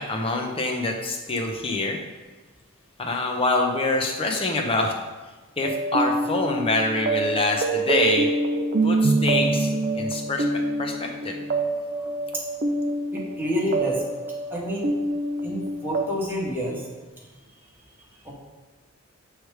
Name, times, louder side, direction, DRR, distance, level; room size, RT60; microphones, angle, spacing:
voice 1, 0.0-2.0 3.0-4.9 5.6-8.3 8.8-11.4, left 2 dB, 25° left, 1 dB, 0.7 m, -25 dB
sound 1, 5.6-16.0, right 2 dB, 40° right, 0.5 m, -26 dB
voice 2, 13.1-14.0 14.5-14.9 15.4-16.9 18.2-18.3, equal, 10° right, -4 dB, 1.1 m, -28 dB
7.8 x 3.3 x 4.8 m, 1.3 s
head